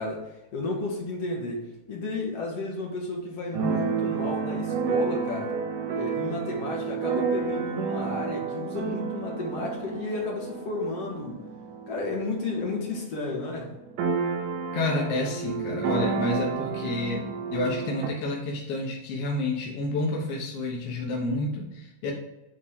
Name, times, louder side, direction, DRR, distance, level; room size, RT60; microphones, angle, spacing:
voice 1, 0.0-5.5 6.0-11.4 11.9-13.7, left 2 dB, 55° left, -2 dB, 2.1 m, -32 dB
Keyboard (musical), 3.5-13.1 13.4-13.5 13.7-18.1, right 5 dB, 75° right, 2.1 m, -30 dB
voice 2, 14.7-17.2 17.5-22.1, left 2 dB, 70° left, -2 dB, 1.4 m, -29 dB
9.3 x 3.6 x 3.6 m, 0.97 s
omnidirectional pair, 4.3 m